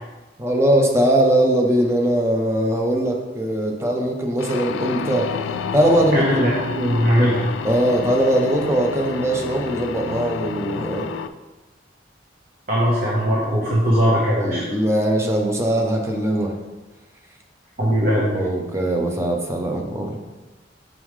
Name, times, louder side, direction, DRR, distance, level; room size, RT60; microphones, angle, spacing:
voice 1, 0.4-5.3 5.7-6.3 7.6-11.1 14.4-16.6 18.3-20.2, right 1 dB, 15° right, 2 dB, 0.7 m, -20 dB
sound 1, 4.4-11.3, left 6 dB, 75° left, 0.3 m, -30 dB
voice 2, 6.1-7.4 12.7-14.6 17.8-18.3, equal, 50° right, -6 dB, 1.2 m, -19 dB
6.2 x 5.5 x 3.2 m, 1.2 s
head